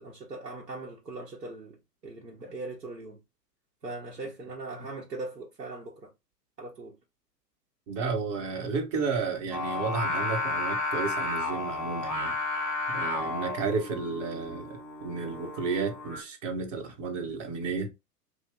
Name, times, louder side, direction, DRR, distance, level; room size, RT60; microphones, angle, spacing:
voice 1, 0.0-1.8 2.0-3.2 3.8-6.1 6.6-6.9, right 2 dB, 90° right, 0.9 m, -40 dB
voice 2, 7.9-12.3 12.9-17.9, right 4 dB, 50° right, 1.0 m, -32 dB
Singing, 9.5-16.2, left 2 dB, ahead, 0.4 m, -32 dB
2.8 x 2.1 x 3.4 m
figure-of-eight pair, 100°, 48 cm